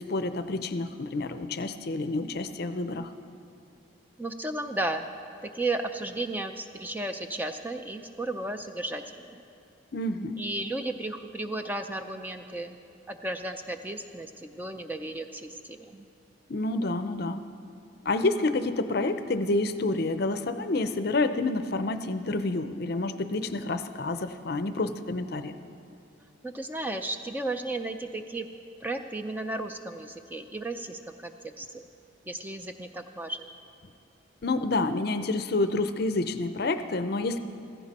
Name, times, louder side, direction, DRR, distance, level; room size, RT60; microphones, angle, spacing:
voice 1, 0.0-3.1 9.9-10.4 16.5-17.4 18.1-25.5 34.4-37.4, left 2 dB, 50° left, 10 dB, 0.5 m, -28 dB
voice 2, 4.2-5.0 5.4-9.4 10.4-12.8 13.1-16.1 26.4-28.5 28.8-31.8 32.3-33.5, right 2 dB, 10° right, 6 dB, 0.4 m, -34 dB
15.5 x 15.0 x 4.2 m, 2.6 s
head